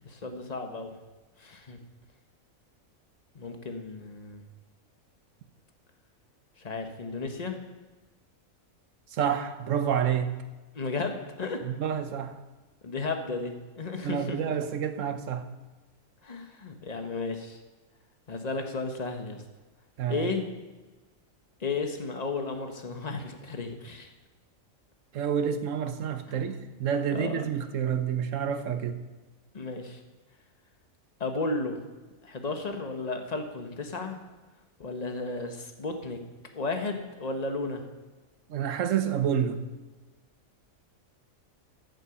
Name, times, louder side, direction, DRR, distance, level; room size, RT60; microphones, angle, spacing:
voice 1, 0.0-1.0 1.4-1.8 3.3-4.4 6.6-7.6 10.7-11.6 12.8-14.4 16.2-17.6 18.3-19.4 20.1-20.4 21.6-24.1 27.1-27.4 29.5-30.0 31.2-31.9 32.2-34.2 34.8-36.2 36.5-37.8, left 3 dB, 30° left, 5 dB, 1.2 m, -33 dB
voice 2, 9.1-10.3 11.6-12.4 14.0-15.5 20.0-20.3 25.1-29.0 38.5-39.6, right 8 dB, 70° right, 10 dB, 1.2 m, -29 dB
13.5 x 7.8 x 5.7 m, 1.2 s
omnidirectional pair, 1.4 m